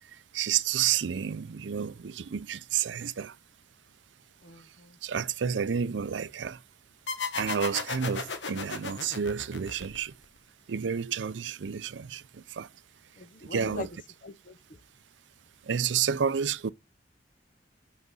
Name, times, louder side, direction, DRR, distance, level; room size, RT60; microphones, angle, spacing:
voice 1, 0.3-3.3 5.0-6.6 7.4-10.1 10.7-12.2 12.6-12.7 13.5-13.9 15.7-16.7, right 7 dB, 90° right, 0.5 m, -30 dB
voice 2, 4.4-5.0 13.2-13.9 14.2-14.6, left 3 dB, 45° left, 0.7 m, -42 dB
sound 1, 7.1-10.4, left 5 dB, 80° left, 1.2 m, -35 dB
6.5 x 6.1 x 5.4 m
head